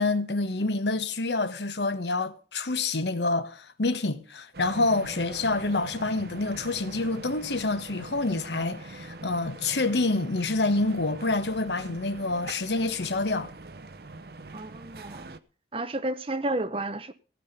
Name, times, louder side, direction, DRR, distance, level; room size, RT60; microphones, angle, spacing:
voice 1, 0.0-13.5, left 3 dB, 80° left, 1.2 m, -27 dB
sound 1, 4.5-15.4, right 2 dB, 60° right, 0.8 m, -43 dB
voice 2, 14.5-15.3 15.7-17.1, right 1 dB, 30° right, 0.9 m, -31 dB
15.5 x 5.7 x 8.3 m
head